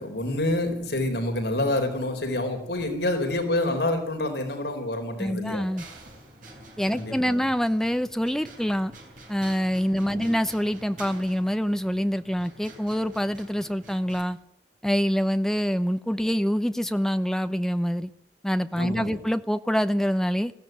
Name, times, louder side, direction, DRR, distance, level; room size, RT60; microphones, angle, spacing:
voice 1, 0.0-5.6 6.9-7.4 10.1-10.3 18.8-19.2, left 1 dB, 70° left, 4 dB, 4.1 m, -27 dB
voice 2, 5.2-5.8 6.8-8.9 9.3-14.4 14.8-18.1 18.4-20.5, equal, 5° left, 11 dB, 0.7 m, -25 dB
sound 1, 5.8-14.2, right 1 dB, 45° right, 7.4 m, -48 dB
20.5 x 15.5 x 9.4 m, 0.75 s
head